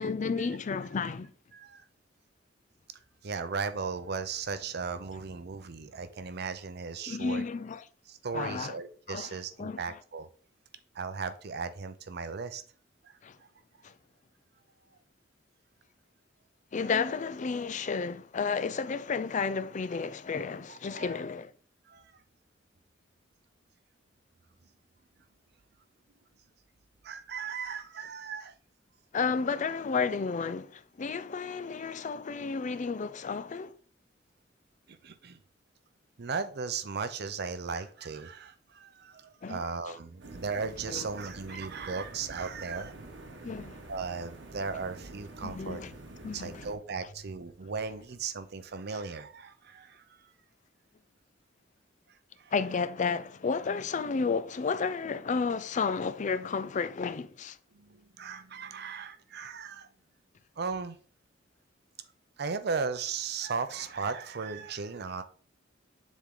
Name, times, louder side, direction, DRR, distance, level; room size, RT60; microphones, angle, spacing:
voice 1, 0.0-1.3 7.1-7.8 8.3-8.8 9.1-9.8 13.2-13.4 13.8-13.9 16.7-21.5 29.1-33.7 39.4-39.6 39.9-40.0 40.9-41.1 43.4-43.8 45.4-45.9 46.2-46.7 52.5-57.6, left 5 dB, 40° left, 0.4 m, -32 dB
voice 2, 1.5-1.8 3.2-7.4 8.1-10.3 10.9-12.6 13.0-13.1 13.4-13.5 20.7-21.2 21.9-22.1 27.0-28.5 34.9-35.4 36.2-43.0 43.9-45.8 46.3-50.1 52.1-52.5 57.7-59.9 60.6-61.0 62.4-65.2, right 5 dB, 60° right, 0.6 m, -36 dB
sound 1, 40.2-46.7, right 2 dB, 75° right, 1.2 m, -47 dB
7.2 x 3.7 x 3.7 m
head